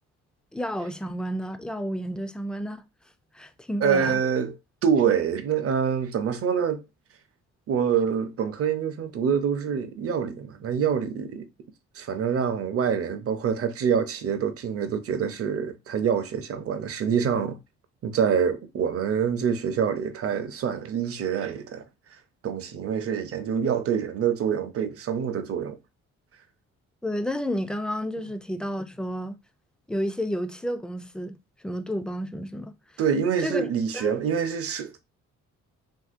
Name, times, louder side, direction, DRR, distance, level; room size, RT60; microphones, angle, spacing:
voice 1, 0.5-2.8 3.3-4.2 27.0-29.4 29.9-31.4 31.6-32.7 33.4-33.7 33.9-34.2, equal, 5° left, 0.3 m, -31 dB
voice 2, 3.8-6.8 7.7-11.5 11.9-17.6 18.0-21.8 22.4-25.8 33.0-35.0, right 7 dB, 50° right, 0.6 m, -26 dB
2.9 x 2.7 x 2.4 m
cardioid pair, 90°, 30 cm